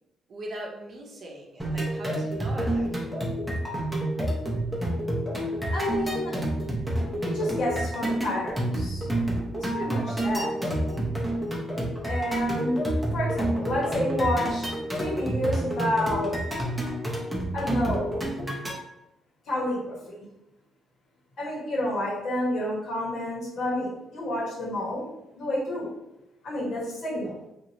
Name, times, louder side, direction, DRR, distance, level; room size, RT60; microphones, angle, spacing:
voice 1, 0.3-3.1, right 1 dB, 50° right, -1 dB, 0.7 m, -40 dB
sound 1, 1.6-18.7, right 1 dB, 5° right, 0.7 m, -29 dB
voice 2, 5.5-6.3 7.2-9.1 9.6-10.6 12.0-12.8 13.1-14.7 15.0-16.4 17.5-18.1 19.5-20.0 21.4-25.0 25.3-25.9 26.4-27.3, left 1 dB, 70° left, -6 dB, 1.2 m, -29 dB
2.7 x 2.5 x 2.9 m, 0.88 s
cardioid pair, 90°, 0 cm